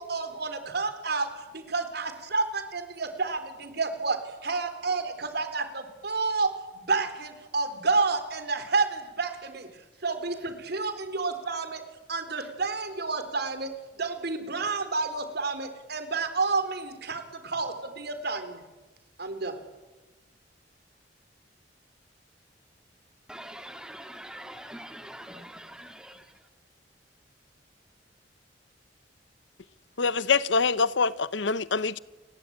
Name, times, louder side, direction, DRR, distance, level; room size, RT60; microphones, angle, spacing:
voice 1, 0.0-11.8 12.1-18.6 19.2-19.6, right 4 dB, 60° right, 3.9 m, -30 dB
voice 2, 23.3-26.1, right 1 dB, 5° right, 2.6 m, -43 dB
voice 3, 30.0-32.0, left 4 dB, 80° left, 0.8 m, -25 dB
30.0 x 22.0 x 8.8 m
head